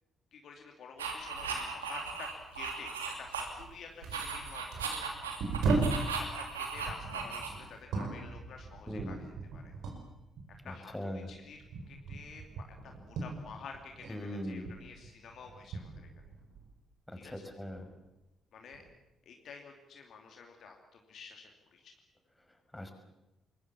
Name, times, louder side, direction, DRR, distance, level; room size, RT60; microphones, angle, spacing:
voice 1, 0.3-5.0 6.0-9.2 9.5-9.7 10.5-10.9 11.3-11.6 11.9-12.4 13.0-16.1 17.2-17.3 18.5-18.8 19.2-21.9, left 5 dB, 55° left, 3 dB, 2.7 m, -50 dB
sound 1, 1.0-3.7 4.0-7.8, right 5 dB, 80° right, 2.8 m, -37 dB
sound 2, 3.6-3.7 4.0-6.1 6.7-10.1 10.4-14.2 14.5-16.8 17.2-18.0 18.7-18.9, right 3 dB, 60° right, 5.4 m, -37 dB
voice 2, 8.9-9.2 10.6-11.3 14.1-14.8 17.1-17.9 22.7-22.9, left 1 dB, 10° left, 6 dB, 5.7 m, -40 dB
25.5 x 22.5 x 7.3 m, 0.95 s
figure-of-eight pair, 40°, 0 cm